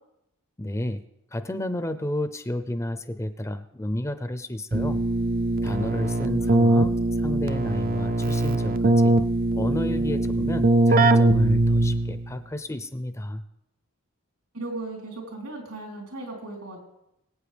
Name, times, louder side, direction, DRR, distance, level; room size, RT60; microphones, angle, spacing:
voice 1, 0.6-1.0 1.3-5.0 5.6-6.9 7.2-9.1 9.6-13.4, left 1 dB, 15° left, 10 dB, 0.5 m, -31 dB
Keyboard (musical), 4.7-12.3, right 2 dB, 40° right, 0.4 m, -21 dB
voice 2, 14.5-16.8, right 2 dB, 80° right, 0 dB, 3.7 m, -36 dB
23.0 x 8.5 x 3.4 m, 0.85 s
head